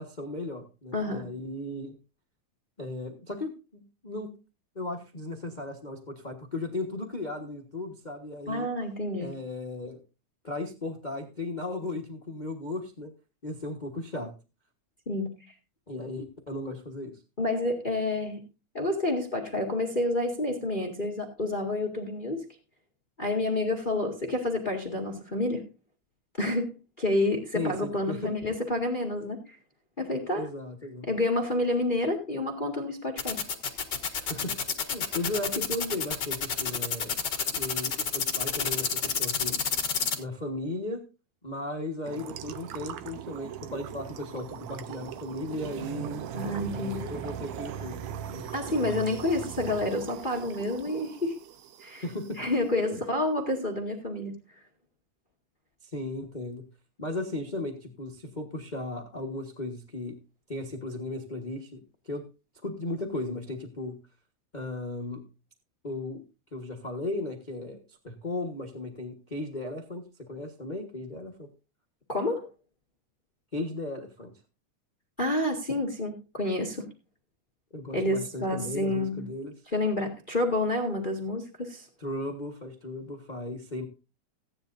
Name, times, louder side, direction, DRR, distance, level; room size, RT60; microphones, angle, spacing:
voice 1, 0.0-1.9 2.8-4.3 4.7-8.7 9.2-10.0 10.4-13.1 13.4-14.3 15.9-17.2 27.5-28.5 30.3-31.1 34.2-34.5 34.9-37.1 37.5-39.6 40.2-41.0 41.4-46.2 46.7-48.4 52.0-52.4 52.7-53.0 55.8-56.6 57.0-60.2 60.5-62.2 62.6-64.0 64.5-65.2 65.8-66.2 66.5-71.5 73.5-74.3 77.7-79.5 82.0-83.8, left 2 dB, 80° left, 3 dB, 0.4 m, -36 dB
voice 2, 0.9-1.2 8.5-9.3 15.0-15.3 17.4-18.4 18.7-22.4 23.2-25.6 26.4-29.5 30.0-30.5 31.1-33.4 46.3-47.0 48.5-51.4 51.8-52.0 52.4-54.4 72.1-72.5 75.2-76.8 77.9-79.3 79.7-81.9, left 1 dB, 20° left, 1 dB, 1.5 m, -29 dB
sound 1, 33.2-40.2, left 6 dB, 40° left, 2.1 m, -28 dB
sound 2, 42.0-52.5, right 9 dB, 75° right, 1.9 m, -39 dB
16.5 x 10.0 x 2.7 m, 0.31 s
omnidirectional pair, 3.5 m